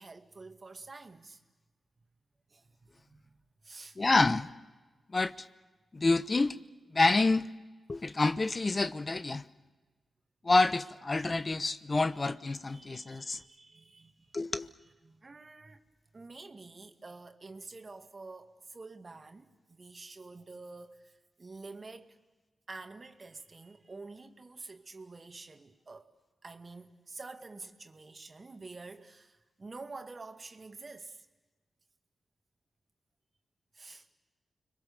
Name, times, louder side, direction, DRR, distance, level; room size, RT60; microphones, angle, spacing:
voice 1, 0.0-1.4 2.5-3.3 3.6-4.0 12.2-14.4 14.8-15.8 16.1-22.2 22.7-26.1 26.4-31.3 33.7-34.1, right 3 dB, 45° right, 2.2 m, -48 dB
voice 2, 4.0-4.5 5.1-5.5 5.9-6.6 6.9-7.5 7.9-9.4 10.4-13.4 14.3-14.7, left 3 dB, 40° left, 1.0 m, -27 dB
30.0 x 22.0 x 7.0 m
supercardioid pair, 40°, 0 cm